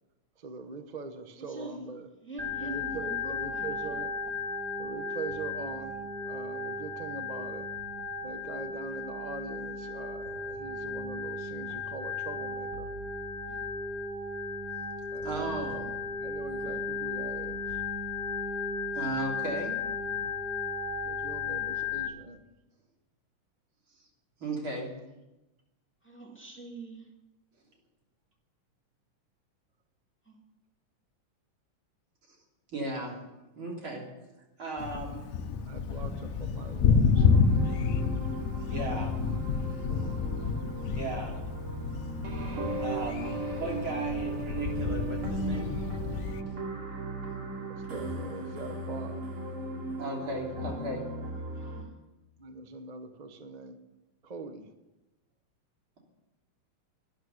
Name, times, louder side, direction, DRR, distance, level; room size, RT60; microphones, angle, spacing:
voice 1, 0.4-2.1 2.6-4.2 4.8-7.7 8.2-12.9 15.1-15.6 16.2-17.8 21.0-22.5 34.9-35.1 35.6-37.5 38.9-39.1 42.4-42.9 47.7-49.3 52.4-53.8 54.2-54.7, right 3 dB, 45° right, 0.5 m, -43 dB
voice 2, 1.4-1.8 2.2-4.0 13.5-13.6 16.6-16.8 26.0-27.1 30.2-30.4 33.9-34.0 38.6-38.9 51.5-51.9, right 2 dB, 5° left, 2.3 m, -44 dB
Organ, 2.4-22.1, left 4 dB, 20° right, 2.8 m, -35 dB
voice 3, 15.2-15.9 18.9-19.7 24.4-24.9 32.7-33.2 33.5-34.1 34.6-35.3 38.7-39.1 41.0-41.4 42.8-45.7 50.0-51.0, right 2 dB, 70° right, 4.1 m, -36 dB
Thunder, 34.8-46.4, left 5 dB, 85° left, 0.6 m, -29 dB
sound 1, 37.2-51.8, right 2 dB, 85° right, 3.6 m, -36 dB
13.0 x 10.5 x 9.4 m
omnidirectional pair, 2.3 m